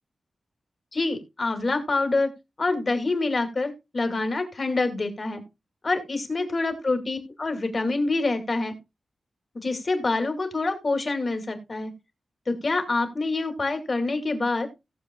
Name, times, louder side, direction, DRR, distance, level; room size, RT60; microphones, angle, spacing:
voice 1, 0.9-2.3 2.6-5.4 5.8-8.8 9.5-11.9 12.5-14.7, left 3 dB, 35° left, 6 dB, 2.2 m, -26 dB
17.5 x 7.0 x 2.2 m, 0.23 s
wide cardioid pair, 145°, 0 cm